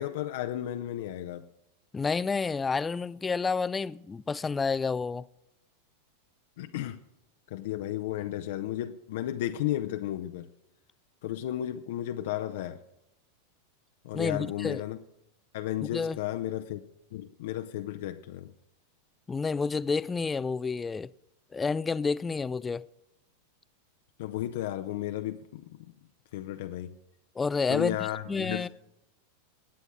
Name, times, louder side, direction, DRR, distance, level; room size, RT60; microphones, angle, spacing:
voice 1, 0.0-1.4 6.6-7.0 7.5-10.5 11.2-12.8 14.0-15.0 15.5-16.8 17.1-18.5 24.2-25.9 26.3-26.9 27.7-28.7, left 13 dB, 55° left, 0.7 m, -33 dB
voice 2, 1.9-5.2 14.1-14.8 15.8-16.2 19.3-21.1 21.5-22.8 27.4-28.7, left 4 dB, 15° left, 0.4 m, -29 dB
22.0 x 9.1 x 3.6 m
figure-of-eight pair, 90°, 0 cm